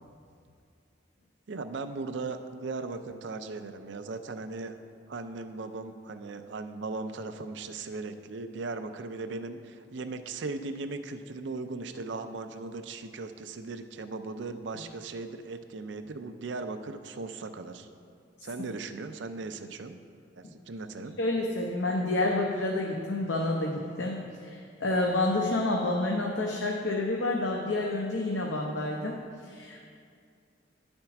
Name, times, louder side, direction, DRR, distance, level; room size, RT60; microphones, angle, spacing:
voice 1, 1.5-4.8 5.1-17.9 18.4-20.0 20.4-21.2, right 3 dB, 75° right, 9 dB, 0.5 m, -38 dB
voice 2, 21.2-29.1 29.4-29.8, left 2 dB, 80° left, -1 dB, 0.7 m, -29 dB
10.5 x 4.4 x 5.8 m, 2.3 s
head